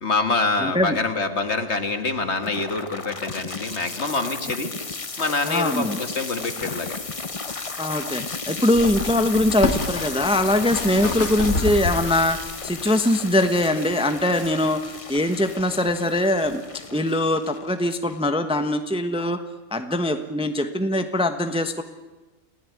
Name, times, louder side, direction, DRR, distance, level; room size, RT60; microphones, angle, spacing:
voice 1, 0.0-4.7 5.2-7.0 11.0-11.2, left 3 dB, 50° left, 7 dB, 2.1 m, -26 dB
voice 2, 0.6-1.0 5.4-6.0 7.8-19.4 19.7-21.8, left 1 dB, 5° right, 8 dB, 1.1 m, -22 dB
sound 1, 2.4-18.4, left 4 dB, 25° left, 0.9 m, -34 dB
sound 2, 8.6-12.7 13.3-13.4, left 3 dB, 75° left, 2.9 m, -29 dB
29.5 x 16.5 x 9.7 m, 1.2 s
omnidirectional pair, 1.5 m